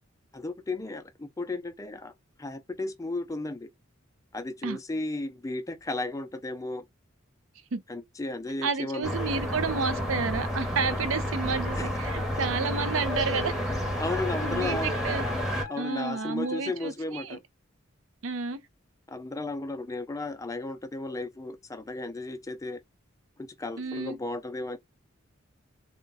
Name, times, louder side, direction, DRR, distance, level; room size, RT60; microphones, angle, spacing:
voice 1, 0.3-2.1 2.4-3.7 4.3-6.8 7.9-9.1 11.8-11.9 12.3-12.4 14.0-14.9 15.7-17.4 19.1-22.8 23.4-24.8, left 2 dB, 15° left, 0.4 m, -34 dB
voice 2, 8.6-13.5 14.4-15.2 15.8-17.4 18.2-18.6 23.8-24.2, right 5 dB, 85° right, 0.5 m, -31 dB
sound 1, 9.0-15.6, equal, 5° right, 0.9 m, -30 dB
Wind instrument woodwind instrument, 12.1-16.8, left 7 dB, 65° left, 0.7 m, -43 dB
2.5 x 2.2 x 3.9 m
head